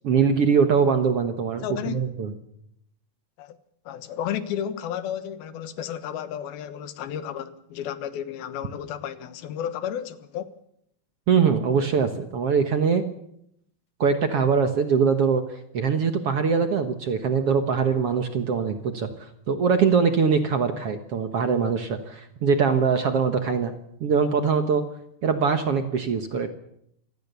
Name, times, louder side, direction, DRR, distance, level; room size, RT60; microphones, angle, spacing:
voice 1, 0.0-2.3 11.3-13.0 14.0-15.4 15.7-23.7 24.0-24.8 25.2-26.5, right 6 dB, 55° right, 1.8 m, -22 dB
voice 2, 1.6-2.0 3.4-3.6 3.9-10.6, left 9 dB, 90° left, 3.2 m, -32 dB
26.0 x 19.0 x 6.9 m
omnidirectional pair, 4.2 m